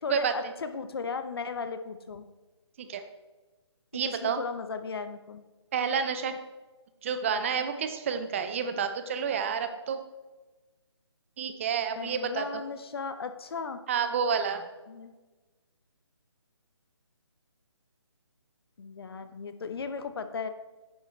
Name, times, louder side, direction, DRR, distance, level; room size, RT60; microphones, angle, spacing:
voice 1, 0.0-2.3 3.9-5.4 12.0-13.8 14.9-15.1 18.8-20.5, left 5 dB, 55° left, 10 dB, 0.8 m, -36 dB
voice 2, 3.9-4.4 5.7-6.3 7.0-10.0 11.4-12.4 13.9-14.7, right 6 dB, 25° right, 8 dB, 0.6 m, -29 dB
9.9 x 6.5 x 3.2 m, 1.2 s
figure-of-eight pair, 155°, 15 cm